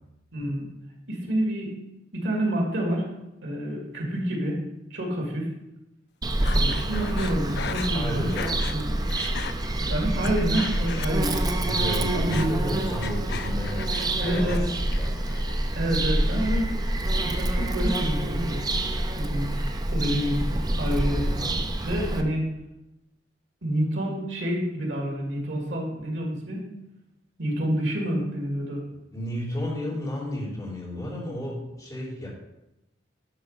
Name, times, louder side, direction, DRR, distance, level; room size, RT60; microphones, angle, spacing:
voice 1, 0.3-0.6 1.1-1.8 2.1-3.1 3.4-4.6 4.9-5.5 6.5-8.3 8.6-8.9 9.8-11.4 12.1-12.7 14.2-14.6 15.8-16.7 17.2-18.6 19.1-19.5 19.9-20.4 20.7-21.3 21.8-22.5 23.6-26.7 27.4-28.8 29.8-29.9, right 1 dB, 90° right, -1 dB, 2.5 m, -28 dB
Bird vocalization bird call bird song, 6.2-22.2, right 1 dB, 20° right, 0.6 m, -27 dB
Breathing, 6.4-8.8 9.1-9.5 10.0-11.5 11.8-14.6 14.9-15.5, left 7 dB, 65° left, 0.5 m, -37 dB
voice 2, 7.9-8.5 11.6-14.6 15.0-15.1 21.4-21.6 29.1-32.3, left 1 dB, 20° left, -5 dB, 3.3 m, -33 dB
11.5 x 4.1 x 5.1 m, 0.91 s
head